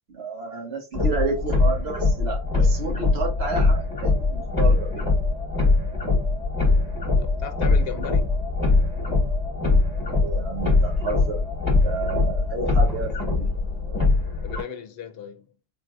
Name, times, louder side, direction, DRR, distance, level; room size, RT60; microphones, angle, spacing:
voice 1, 0.1-5.1 10.1-11.4 11.8-13.5, right 3 dB, 85° right, 1.3 m, -31 dB
sound 1, 0.9-14.6, left 3 dB, 20° left, 1.2 m, -22 dB
voice 2, 7.2-8.3 14.4-15.4, left 6 dB, 70° left, 0.8 m, -35 dB
3.8 x 2.6 x 2.3 m
omnidirectional pair, 1.0 m